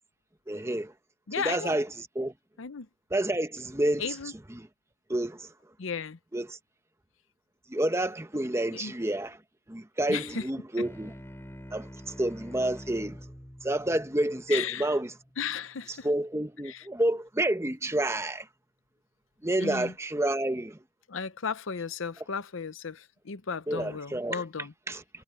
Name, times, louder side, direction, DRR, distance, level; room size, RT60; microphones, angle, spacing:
voice 1, 0.5-0.9 1.4-2.3 3.1-4.1 4.5-4.7 5.1-5.5 6.3-6.6 7.7-9.4 9.7-11.1 11.7-13.2 13.6-15.1 15.9-18.5 19.4-20.8 23.7-24.4 24.9-25.0, right 1 dB, 15° right, 0.8 m, -29 dB
voice 2, 1.3-1.8 2.6-2.9 4.0-4.3 5.8-6.2 8.7-8.9 10.1-10.5 14.5-14.9 15.4-16.1 16.6-16.8 19.6-19.9 21.1-24.7, left 6 dB, 65° left, 0.7 m, -35 dB
sound 1, 10.8-15.7, equal, 10° left, 3.9 m, -46 dB
head